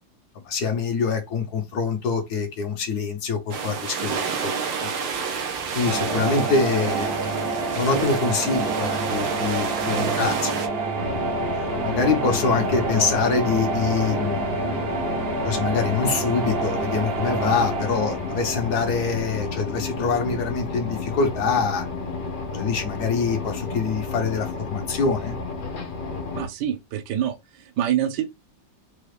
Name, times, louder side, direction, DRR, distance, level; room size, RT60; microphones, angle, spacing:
voice 1, 0.4-4.9 5.7-10.6 11.5-14.7 15.4-21.9 22.5-25.3, left 5 dB, 60° left, 1.3 m, -25 dB
sound 1, 3.5-10.7, right 6 dB, 85° right, 1.6 m, -29 dB
sound 2, 5.9-19.7, right 3 dB, 50° right, 0.7 m, -28 dB
sound 3, 11.0-26.5, left 3 dB, 80° left, 0.4 m, -32 dB
voice 2, 26.3-28.3, right 10 dB, 70° right, 1.2 m, -26 dB
4.7 x 2.3 x 3.2 m
omnidirectional pair, 2.0 m